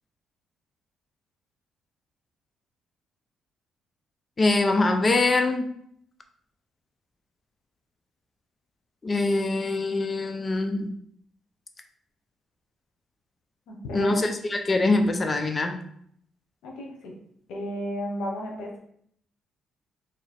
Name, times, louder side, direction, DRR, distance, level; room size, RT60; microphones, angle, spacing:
voice 1, 4.4-5.7 9.0-10.9 13.9-15.8, left 2 dB, 30° left, 5 dB, 0.5 m, -23 dB
voice 2, 13.7-14.2 16.6-17.1 17.5-18.8, equal, 85° left, 0 dB, 0.9 m, -33 dB
3.0 x 2.8 x 4.3 m, 0.67 s
cardioid pair, 90°, 0 cm